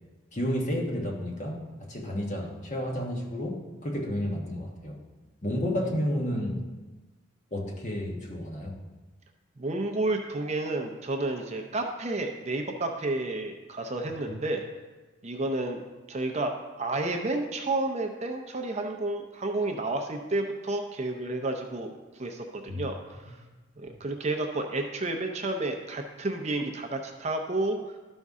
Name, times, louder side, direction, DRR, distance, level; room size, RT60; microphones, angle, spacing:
voice 1, 0.3-5.0 5.4-6.6 7.5-8.8 14.3-14.4 22.7-22.8, equal, 35° left, 0 dB, 1.2 m, -31 dB
voice 2, 9.6-14.6 15.2-15.8 16.1-23.4 23.8-27.8, right 2 dB, 35° right, 4 dB, 0.6 m, -31 dB
12.5 x 5.3 x 3.6 m, 1.2 s
head